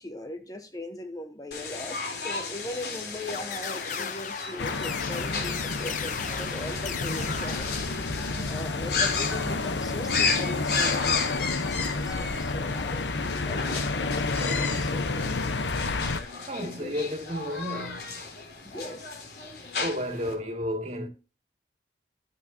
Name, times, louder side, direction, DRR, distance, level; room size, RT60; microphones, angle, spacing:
voice 1, 0.0-7.8 8.5-15.4 16.6-17.0 18.6-19.4, left 1 dB, 20° left, 0.9 m, -39 dB
sound 1, 1.5-20.3, left 5 dB, 65° left, 3.6 m, -34 dB
sound 2, 3.3-8.5, left 7 dB, 45° left, 0.8 m, -37 dB
sound 3, 4.6-16.2, left 3 dB, 85° left, 1.0 m, -30 dB
voice 2, 16.3-18.1 19.8-21.1, equal, 40° right, 2.4 m, -32 dB
13.0 x 9.6 x 2.8 m
head